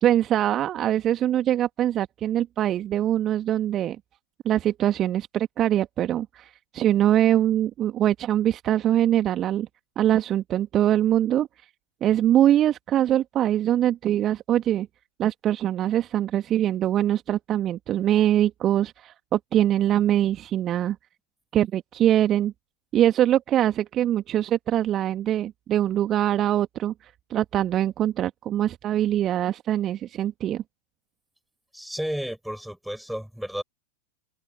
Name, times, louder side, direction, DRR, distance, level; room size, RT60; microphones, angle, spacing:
voice 1, 0.0-4.0 4.4-9.7 10.0-11.5 12.0-14.9 15.2-21.0 21.5-22.5 22.9-30.6, right 11 dB, 30° right, 1.7 m, -23 dB
voice 2, 31.7-33.6, equal, ahead, 7.6 m, -32 dB
figure-of-eight pair, 90°, 0 cm